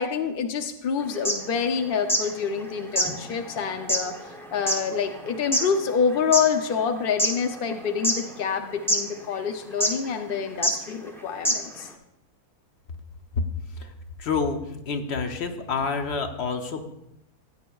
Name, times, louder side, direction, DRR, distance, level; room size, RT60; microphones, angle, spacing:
voice 1, 0.0-11.9, left 6 dB, 75° left, 6 dB, 0.5 m, -27 dB
sound 1, 1.1-2.3 2.6-2.7 2.9-6.5 7.0-7.7 8.0-8.6 8.9-9.0 9.8-10.1 10.6-10.8 11.1-11.2 11.4-11.8, equal, 5° left, 0.5 m, -25 dB
voice 2, 14.2-16.9, left 5 dB, 50° left, 6 dB, 0.9 m, -28 dB
14.5 x 8.7 x 2.3 m, 0.85 s
omnidirectional pair, 1.7 m